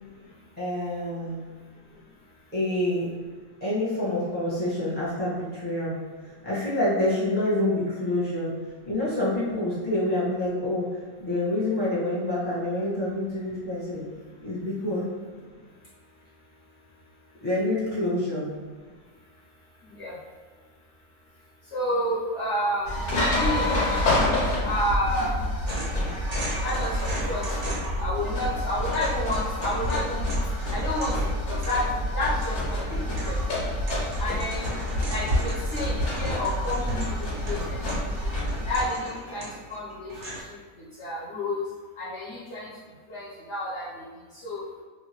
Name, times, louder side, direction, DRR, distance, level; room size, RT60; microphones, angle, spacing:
voice 1, 0.6-1.4 2.5-3.1 3.6-6.0 6.2-8.5 8.8-10.9 11.2-14.0 14.4-15.1 17.4-18.5, left 1 dB, 10° left, -8 dB, 0.8 m, -27 dB
voice 2, 21.7-22.9 23.2-23.9 24.6-25.3 26.6-30.3 30.7-31.1 31.5-31.8 32.1-33.0 33.2-33.4 34.2-34.7 35.1-37.8 38.2-38.3 38.7-40.1 40.8-41.6 42.0-42.7 43.1-43.9 44.4-44.6, left 1 dB, 60° left, -8 dB, 0.9 m, -30 dB
sound 1, 22.8-38.9, left 1 dB, 85° left, 1.4 m, -28 dB
sound 2, 25.7-28.1 28.4-40.4, right 1 dB, 65° right, 0.3 m, -38 dB
2.8 x 2.5 x 2.9 m, 1.5 s
omnidirectional pair, 1.5 m